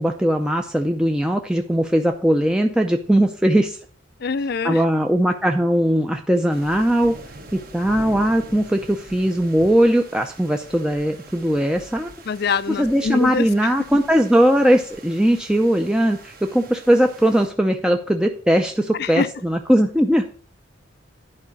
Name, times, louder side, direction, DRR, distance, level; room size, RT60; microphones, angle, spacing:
voice 1, 0.0-3.8 4.6-7.1 7.5-12.1 12.7-20.2, equal, 5° right, 0.5 m, -19 dB
voice 2, 4.2-4.8 12.3-13.5 19.0-19.3, left 5 dB, 50° left, 0.4 m, -24 dB
sound 1, 6.5-17.5, right 2 dB, 50° right, 1.3 m, -43 dB
11.0 x 4.9 x 6.2 m
head